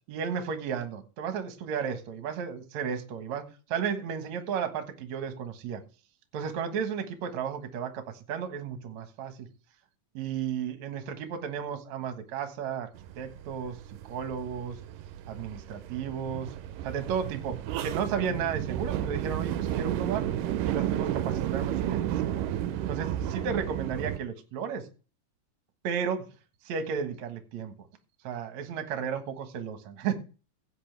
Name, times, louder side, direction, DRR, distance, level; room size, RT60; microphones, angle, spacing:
voice 1, 0.1-5.8 6.3-9.5 10.1-12.9 13.2-13.8 14.0-14.8 15.3-16.5 16.8-20.3 20.6-22.4 22.9-24.8 25.8-26.3 26.7-27.7 28.2-30.1, right 7 dB, 60° right, 7 dB, 2.5 m, -33 dB
sound 1, 13.0-24.2, right 11 dB, 85° right, 2.3 m, -32 dB
15.5 x 8.6 x 3.3 m, 0.35 s
omnidirectional pair, 3.8 m